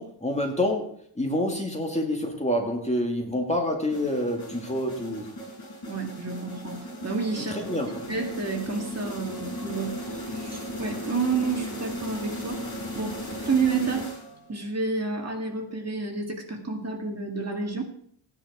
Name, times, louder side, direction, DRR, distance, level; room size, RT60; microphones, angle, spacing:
voice 1, 0.0-5.3 7.5-8.0, left 1 dB, 15° left, 2 dB, 2.0 m, -27 dB
sound 1, 3.9-14.6, left 1 dB, 45° left, 7.7 m, -37 dB
voice 2, 5.9-7.6 8.0-12.6 13.0-14.1 14.5-17.8, right 4 dB, 35° right, 2 dB, 2.1 m, -30 dB
16.0 x 9.9 x 4.8 m, 0.62 s
wide cardioid pair, 150°, 47 cm